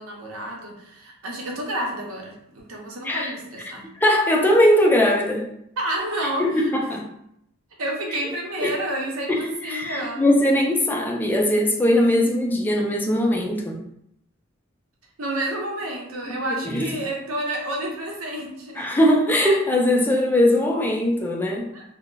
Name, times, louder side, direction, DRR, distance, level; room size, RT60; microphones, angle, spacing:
voice 1, 0.0-3.9 5.8-6.7 7.8-10.2 15.2-18.9 21.7-21.8, right 1 dB, 90° right, 0 dB, 0.7 m, -30 dB
voice 2, 4.0-5.5 6.4-7.0 8.6-8.7 9.3-13.8 16.6-17.0 18.8-21.7, left 1 dB, 10° left, 0 dB, 0.4 m, -20 dB
2.3 x 2.0 x 3.8 m, 0.75 s
head